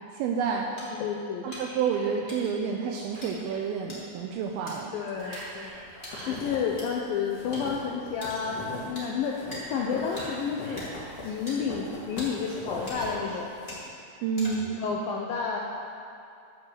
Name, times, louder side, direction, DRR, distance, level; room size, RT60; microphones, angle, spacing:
voice 1, 0.1-0.7 1.4-4.9 14.2-14.8, right 6 dB, 85° right, 1 dB, 2.2 m, -29 dB
sound 1, 0.8-0.9 1.5-1.6 2.3-2.5 3.2-3.3 3.9-4.0 4.7-4.8 5.3-5.4 6.0-6.3 6.8-6.9 7.5-7.6 8.2-8.5 8.9-9.1 9.5-9.6 10.2-10.3 10.8-10.9 11.5-11.6 12.2-12.3 12.9-13.3 13.7-13.8 14.4-14.8, left 1 dB, 15° left, 1.9 m, -41 dB
voice 2, 1.0-1.5 4.9-5.7 6.3-10.8 11.2-13.5 14.8-15.6, left 6 dB, 85° left, -1 dB, 2.1 m, -30 dB
Whispering, 1.5-2.2 2.8-3.6 5.2-6.4 9.5-11.3 12.2-13.4, right 2 dB, 70° right, 3.3 m, -46 dB
sound 2, 5.1-5.8 6.0-8.9 9.2-13.1 13.4-13.8, left 2 dB, 55° left, 2.9 m, -41 dB
13.0 x 4.7 x 7.5 m, 2.6 s
omnidirectional pair, 4.9 m